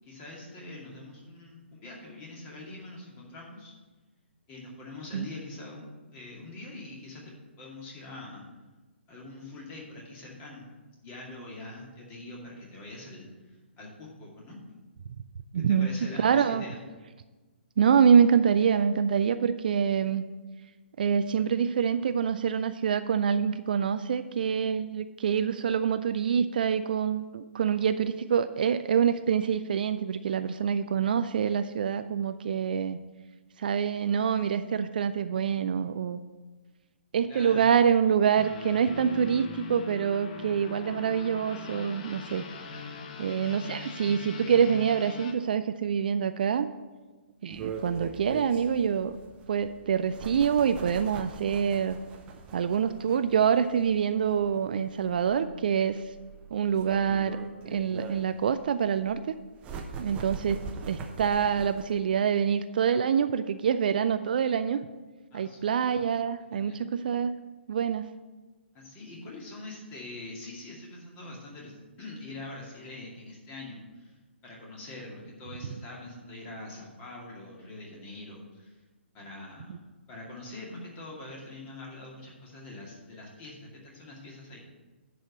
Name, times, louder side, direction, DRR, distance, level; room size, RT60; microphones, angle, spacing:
voice 1, 0.0-3.8 4.5-8.4 9.1-10.6 11.0-14.6 15.7-16.8 37.3-37.8 65.3-65.6 66.5-66.8 68.7-74.2 74.4-78.8 79.1-79.8 80.1-84.6, left 2 dB, 20° left, -2 dB, 2.4 m, -44 dB
voice 2, 15.5-15.9 16.2-16.6 17.8-20.2 21.0-33.0 33.6-36.2 37.1-42.4 43.2-46.7 47.4-49.2 49.5-52.0 52.5-56.0 56.5-57.4 57.7-59.4 60.0-60.6 60.9-64.9 65.3-67.3 67.7-68.1, right 7 dB, 45° right, 11 dB, 0.4 m, -26 dB
sound 1, 38.4-45.3, left 5 dB, 40° left, 0.9 m, -41 dB
sound 2, 47.5-61.9, right 5 dB, 20° right, 0.9 m, -42 dB
10.5 x 4.9 x 7.1 m, 1.3 s
figure-of-eight pair, 130°, 6 cm